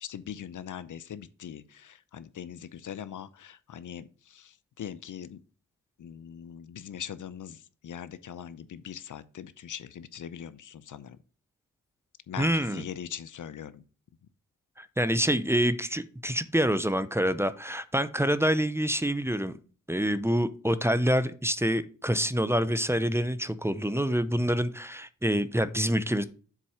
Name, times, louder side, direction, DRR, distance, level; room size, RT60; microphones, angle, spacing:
voice 1, 0.0-5.4 6.0-11.2 12.3-13.8, left 9 dB, 65° left, 15 dB, 0.7 m, -41 dB
voice 2, 12.4-12.8 14.8-19.5 19.9-26.2, equal, 10° right, 13 dB, 0.7 m, -26 dB
7.4 x 4.2 x 4.9 m, 0.39 s
cardioid pair, 50°, 33 cm